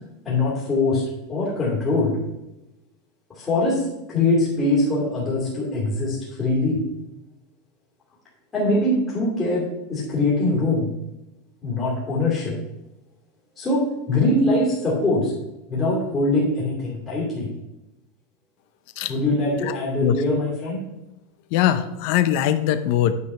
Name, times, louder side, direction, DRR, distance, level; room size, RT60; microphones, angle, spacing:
voice 1, 0.2-1.0 1.3-2.2 3.3-6.8 8.5-10.9 11.6-12.6 13.6-15.3 15.7-17.5 19.1-20.8, left 2 dB, 15° left, -6 dB, 2.8 m, -22 dB
voice 2, 21.5-23.1, left 11 dB, 45° left, 11 dB, 0.6 m, -21 dB
9.5 x 4.9 x 5.6 m, 0.93 s
supercardioid pair, 175°, 0 cm